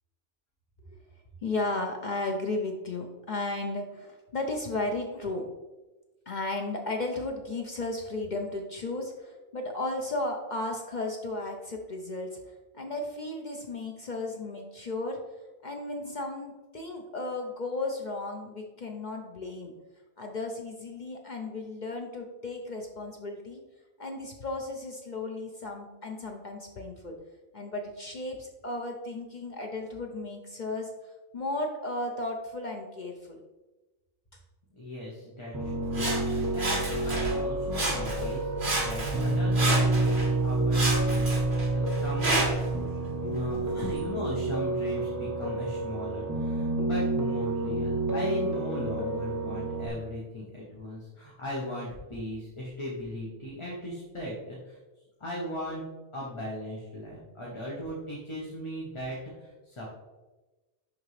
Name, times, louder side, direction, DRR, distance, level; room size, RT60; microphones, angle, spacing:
voice 1, 1.4-5.4 6.3-12.4 12.7-15.2 15.6-19.7 20.2-23.6 24.0-27.2 27.5-30.9 31.3-33.4, left 2 dB, 45° left, 2 dB, 0.7 m, -34 dB
voice 2, 34.8-38.5 38.8-42.4 43.2-54.8 55.2-55.8 56.1-59.8, left 1 dB, 25° left, -5 dB, 1.1 m, -38 dB
Piano, 35.5-49.9, right 2 dB, 20° right, 0.6 m, -29 dB
Sawing, 35.9-37.4 37.7-38.3 38.6-40.3 40.7-42.7 43.4-43.5, right 2 dB, 45° right, 1.5 m, -30 dB
10.5 x 3.6 x 3.2 m, 1.1 s
omnidirectional pair, 1.3 m